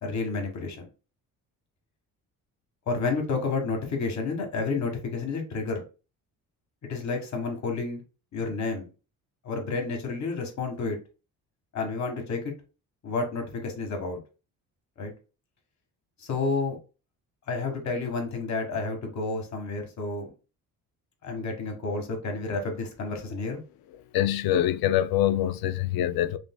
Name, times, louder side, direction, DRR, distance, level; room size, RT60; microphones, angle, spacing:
voice 1, 0.0-0.9 2.9-5.8 6.8-8.0 8.3-8.9 9.4-11.0 11.7-12.5 13.0-14.2 15.0-15.1 16.2-16.8 17.5-20.3 21.2-23.6, left 3 dB, 50° left, 1.6 m, -30 dB
voice 2, 24.1-26.4, left 12 dB, 80° left, 0.6 m, -24 dB
5.1 x 3.4 x 2.2 m
cardioid pair, 110°, 35 cm